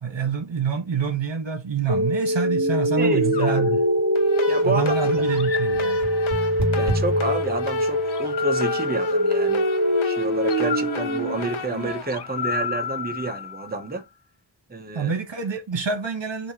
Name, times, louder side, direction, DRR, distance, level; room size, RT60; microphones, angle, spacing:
voice 1, 0.0-3.8 4.6-6.0 14.9-16.5, right 6 dB, 65° right, 1.5 m, -26 dB
sound 1, 1.9-11.9, equal, 35° right, 2.4 m, -23 dB
voice 2, 3.0-3.8 4.5-5.3 6.8-9.7 10.0-14.0 14.7-15.1, right 3 dB, 20° right, 0.8 m, -29 dB
sound 2, 3.3-4.7 5.3-6.6 8.1-9.8 10.5-14.0, left 8 dB, 55° left, 0.7 m, -34 dB
sound 3, 4.1-13.2, left 6 dB, 80° left, 1.0 m, -36 dB
6.0 x 2.8 x 2.9 m
wide cardioid pair, 55°, 48 cm